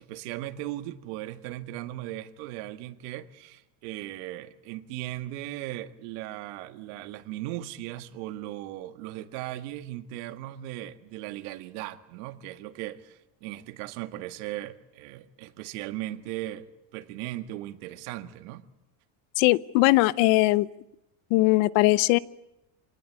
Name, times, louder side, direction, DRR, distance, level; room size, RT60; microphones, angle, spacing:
voice 1, 0.0-18.7, right 14 dB, 85° right, 1.8 m, -38 dB
voice 2, 19.4-20.7 21.3-22.2, left 20 dB, 80° left, 1.0 m, -20 dB
27.5 x 19.0 x 9.8 m
cardioid pair, 145°, 46 cm